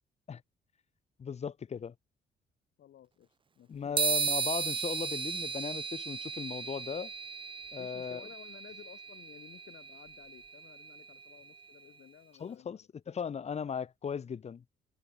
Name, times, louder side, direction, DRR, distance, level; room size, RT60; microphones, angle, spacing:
voice 1, 1.2-1.9 3.7-7.1 7.7-8.3 12.4-12.8 13.1-14.6, left 7 dB, 35° left, 0.6 m, -37 dB
voice 2, 2.8-4.2 6.5-6.7 7.8-12.9, left 11 dB, 65° left, 1.2 m, -55 dB
sound 1, 4.0-11.6, right 5 dB, 25° right, 0.6 m, -36 dB
cardioid pair, 90°, 20 cm